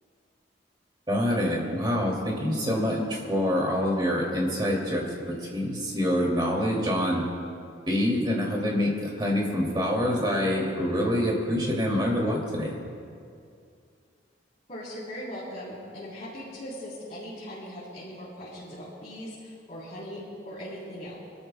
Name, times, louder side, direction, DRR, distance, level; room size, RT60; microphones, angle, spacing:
voice 1, 1.1-7.2 7.9-12.8, equal, 25° right, -2 dB, 2.6 m, -26 dB
voice 2, 14.7-21.2, equal, 40° left, -10 dB, 3.7 m, -39 dB
27.5 x 13.0 x 2.3 m, 2.4 s
head